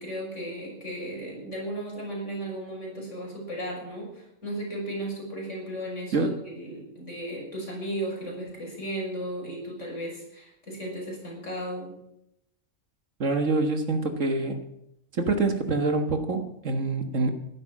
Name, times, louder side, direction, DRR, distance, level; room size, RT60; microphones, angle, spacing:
voice 1, 0.0-12.0, right 1 dB, 60° left, -2 dB, 6.5 m, -35 dB
voice 2, 13.2-14.6 15.2-17.3, right 3 dB, 65° right, 6 dB, 1.8 m, -26 dB
15.0 x 12.0 x 6.1 m, 0.79 s
omnidirectional pair, 1.4 m